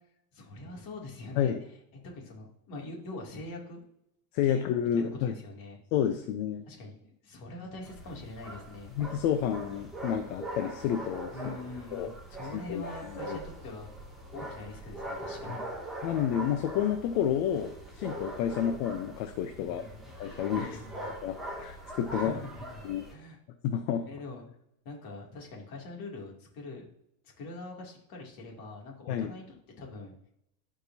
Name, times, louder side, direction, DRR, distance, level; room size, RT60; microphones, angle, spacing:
voice 1, 0.3-1.5 2.0-3.8 4.4-5.8 6.7-8.9 11.3-13.9 14.3-15.6 19.6-20.1 20.6-21.2 22.1-22.8 23.1-23.4 24.1-24.5 24.8-26.9 27.4-30.1, left 2 dB, 45° left, -1 dB, 2.9 m, -43 dB
voice 2, 4.3-5.3 5.9-6.6 9.0-11.3 11.9-12.1 12.7-12.8 13.1-13.4 15.5-15.6 16.0-19.8 20.2-20.8 21.0-22.3 22.8-23.0 23.6-24.1 29.1-29.3, left 9 dB, 60° left, 6 dB, 1.0 m, -30 dB
sound 1, 7.8-23.1, right 1 dB, ahead, 2.0 m, -42 dB
15.5 x 5.3 x 2.8 m, 0.75 s
supercardioid pair, 140°, 48 cm